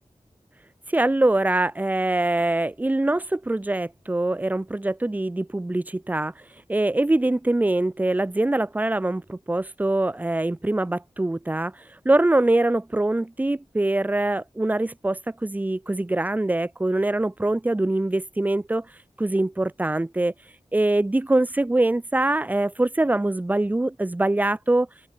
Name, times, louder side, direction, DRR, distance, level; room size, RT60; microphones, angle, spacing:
voice 1, 0.9-6.3 6.7-18.9 19.2-20.3 20.7-24.9, right 2 dB, 15° right, 0.3 m, -23 dB
open air
wide cardioid pair, 40°, 13 cm